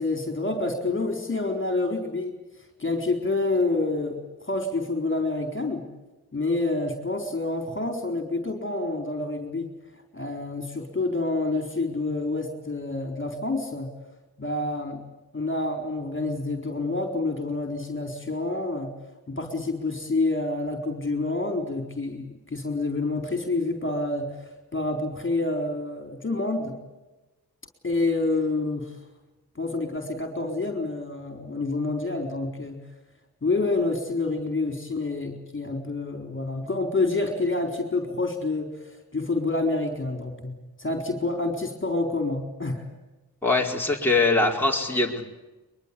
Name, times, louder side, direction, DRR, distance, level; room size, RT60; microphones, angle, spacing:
voice 1, 0.0-2.3 2.8-5.8 6.3-9.7 10.1-13.9 14.4-15.0 15.3-18.9 19.3-26.7 27.8-28.9 29.6-32.8 33.4-42.9, left 2 dB, 30° left, 5 dB, 4.1 m, -28 dB
voice 2, 43.4-45.2, left 3 dB, 5° left, -2 dB, 4.6 m, -22 dB
23.0 x 22.5 x 8.6 m, 1.1 s
cardioid pair, 75°, 39 cm